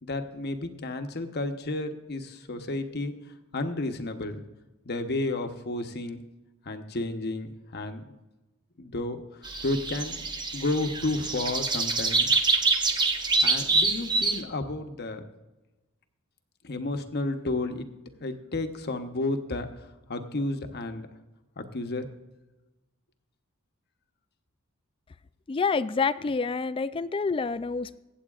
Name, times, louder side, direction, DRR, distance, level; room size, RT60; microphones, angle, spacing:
voice 1, 0.0-3.1 3.5-4.4 4.8-6.2 6.6-8.0 8.8-9.2 9.6-12.4 13.4-15.2 16.6-17.9 18.2-21.1 21.6-22.1, left 2 dB, 50° left, 6 dB, 0.9 m, -32 dB
sound 1, 9.4-14.4, right 3 dB, 20° right, 0.7 m, -26 dB
voice 2, 25.5-28.0, left 4 dB, 25° left, 14 dB, 0.3 m, -27 dB
24.0 x 8.1 x 2.4 m, 1.1 s
head